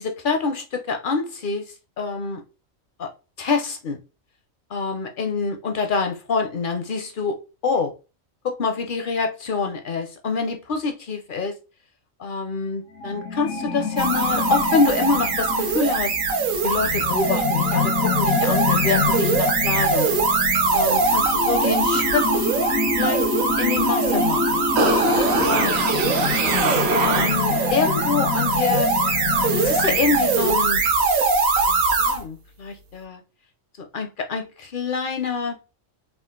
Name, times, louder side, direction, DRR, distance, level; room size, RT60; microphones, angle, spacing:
voice 1, 0.0-2.4 3.0-3.1 3.4-4.0 4.7-7.9 8.4-11.5 12.2-16.2 16.6-20.1 20.7-22.3 23.0-23.2 23.6-24.7 25.4-25.7 26.9-28.9 29.6-30.8 31.7-33.2 33.9-35.6, left 4 dB, 55° left, 0.6 m, -26 dB
sound 1, 13.0-30.9, left 5 dB, 80° left, 1.1 m, -27 dB
sound 2, 14.0-32.2, right 4 dB, 85° right, 1.2 m, -22 dB
sound 3, 24.8-27.7 28.1-28.2, right 3 dB, 60° right, 0.8 m, -24 dB
3.8 x 2.4 x 3.6 m
omnidirectional pair, 1.4 m